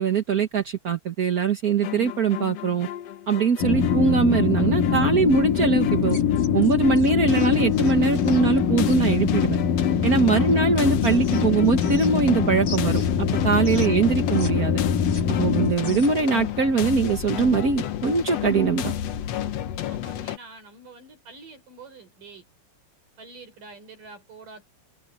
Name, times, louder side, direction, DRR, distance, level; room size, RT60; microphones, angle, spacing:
voice 1, 0.0-2.9 3.3-6.2 6.5-9.6 10.0-14.8 15.3-18.9, right 5 dB, 55° right, 1.0 m, -22 dB
sound 1, 1.8-20.4, left 10 dB, 60° left, 1.9 m, -32 dB
sound 2, 3.6-15.7, left 7 dB, 75° left, 3.1 m, -23 dB
sound 3, 6.0-9.0 10.5-12.4 12.6-14.5 14.8-16.3, left 2 dB, 25° left, 5.0 m, -42 dB
voice 2, 13.7-14.0 15.3-15.6 19.9-22.5 23.2-24.7, right 3 dB, 70° right, 7.2 m, -46 dB
omnidirectional pair, 3.9 m